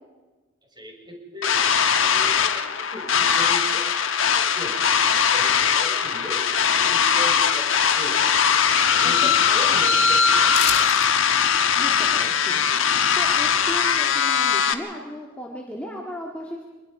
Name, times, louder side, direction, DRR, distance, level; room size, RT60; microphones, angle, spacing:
voice 1, 0.7-4.2 4.5-4.8 5.3-7.7 7.9-8.3 9.0-10.6, equal, 20° right, 0 dB, 5.7 m, -38 dB
sound 1, 1.4-14.7, left 7 dB, 85° left, 1.2 m, -20 dB
voice 2, 9.0-9.3 11.8-16.6, equal, 5° left, -2 dB, 2.0 m, -36 dB
sound 2, 10.5-11.1 11.4-11.5, left 8 dB, 55° left, 2.1 m, -27 dB
26.0 x 21.0 x 5.0 m, 1.3 s
head